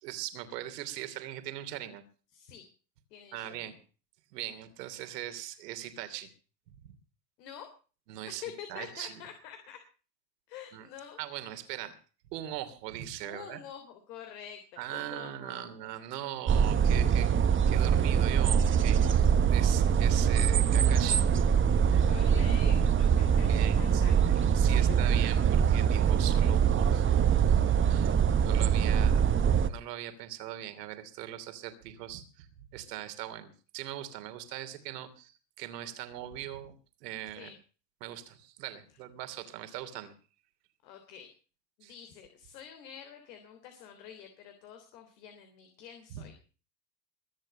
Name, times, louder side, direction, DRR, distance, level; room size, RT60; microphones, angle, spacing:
voice 1, 0.0-2.0 3.3-3.7 4.3-6.3 6.8-6.9 8.1-8.4 8.7-9.2 10.7-10.9 11.2-12.0 12.3-13.6 14.8-17.3 17.6-21.3 23.5-24.2 24.5-29.3 29.6-32.5 32.7-36.7 37.0-37.5 38.0-40.1 41.8-41.9 46.1-46.2, right 13 dB, 75° right, 9 dB, 3.1 m, -40 dB
voice 2, 2.3-2.6 3.1-3.6 7.4-7.7 8.4-9.8 10.5-11.2 13.2-15.7 22.0-24.4 24.7-25.0 37.4-37.6 40.8-41.3 41.8-46.3, left 8 dB, 75° left, 7 dB, 3.5 m, -47 dB
sound 1, 16.5-29.7, right 7 dB, 25° right, 1.2 m, -24 dB
22.5 x 7.9 x 6.7 m, 0.38 s
hypercardioid pair, 105°, 49 cm